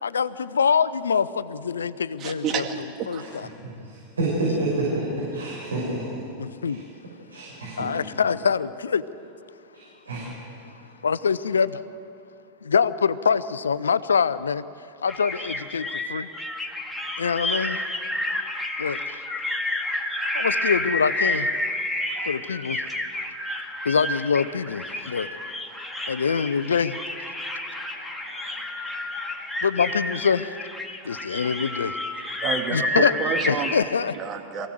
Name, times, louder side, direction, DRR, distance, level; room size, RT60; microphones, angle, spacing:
voice 1, 0.0-3.5 6.4-6.8 7.8-9.0 11.0-11.8 12.6-14.6 15.0-16.3 17.2-17.8 18.8-19.2 20.3-21.5 22.3-22.8 23.8-25.3 26.1-27.0 27.8-28.6 29.6-30.5 31.0-31.9 32.7-33.1 33.5-34.2, left 6 dB, 85° left, 15 dB, 0.6 m, -25 dB
voice 2, 2.2-3.2 22.1-22.3 32.4-33.7 34.2-34.7, right 7 dB, 40° right, 4 dB, 2.2 m, -30 dB
voice 3, 3.8-6.0 6.6-6.8 7.3-7.9 9.7-10.3, right 2 dB, 85° right, -5 dB, 6.0 m, -28 dB
sound 1, 15.1-33.8, left 1 dB, 5° left, 2.1 m, -30 dB
23.0 x 16.0 x 7.7 m, 2.7 s
hypercardioid pair, 95°, 0 cm